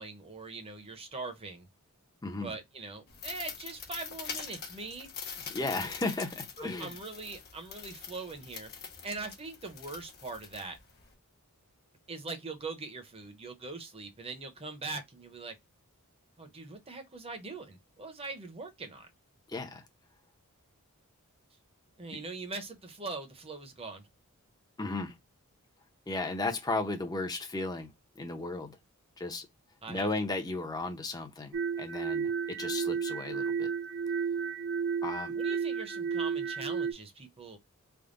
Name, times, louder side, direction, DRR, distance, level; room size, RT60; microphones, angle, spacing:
voice 1, 0.0-1.7 2.4-5.1 6.6-8.7 9.0-10.8 12.1-15.5 16.4-19.1 22.0-24.0 29.8-30.1 35.3-37.6, right 3 dB, 25° right, 0.8 m, -42 dB
voice 2, 2.2-2.5 5.5-7.0 19.5-19.8 24.8-25.1 26.1-27.9 28.2-28.8 29.2-29.5 29.9-33.7 35.0-35.3, left 2 dB, 15° left, 0.6 m, -35 dB
sound 1, 3.1-11.1, left 6 dB, 45° left, 1.0 m, -44 dB
sound 2, 31.5-36.9, right 6 dB, 45° right, 0.4 m, -32 dB
3.5 x 2.2 x 3.8 m
head